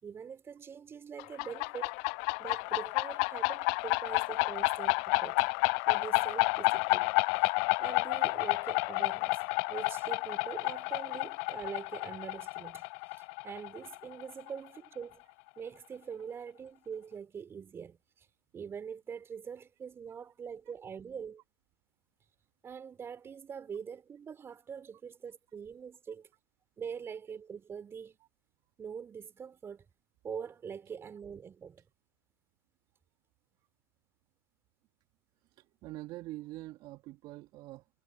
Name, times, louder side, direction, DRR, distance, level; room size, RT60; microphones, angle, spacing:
voice 1, 0.0-1.9 2.4-5.4 5.9-7.5 7.8-12.9 13.4-15.2 15.6-18.3 18.5-21.4 22.6-26.3 26.8-28.2 28.8-29.9 30.2-31.8, right 7 dB, 20° right, 4.9 m, -44 dB
sound 1, 1.2-14.6, left 32 dB, 45° left, 0.6 m, -30 dB
voice 2, 35.4-37.9, right 18 dB, 40° right, 2.1 m, -45 dB
hypercardioid pair, 105°, 12 cm